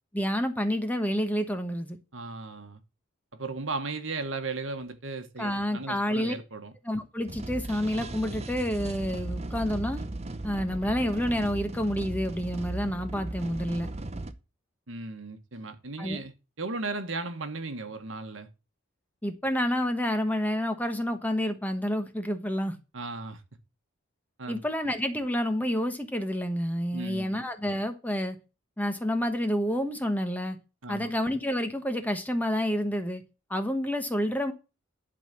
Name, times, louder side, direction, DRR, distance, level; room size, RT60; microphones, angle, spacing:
voice 1, 0.1-2.0 5.4-6.3 6.8-10.0 10.4-13.9 16.0-16.2 19.2-22.8 24.5-28.4 28.8-30.6 30.9-33.2 33.5-34.5, equal, 10° left, 1.2 m, -29 dB
voice 2, 2.1-2.8 3.3-6.7 14.9-16.3 16.6-18.5 22.9-23.4 24.4-24.6 26.9-27.4 30.8-31.1, right 3 dB, 70° right, 1.5 m, -36 dB
sound 1, 7.3-14.3, right 2 dB, 30° right, 0.8 m, -37 dB
11.5 x 4.0 x 7.4 m
head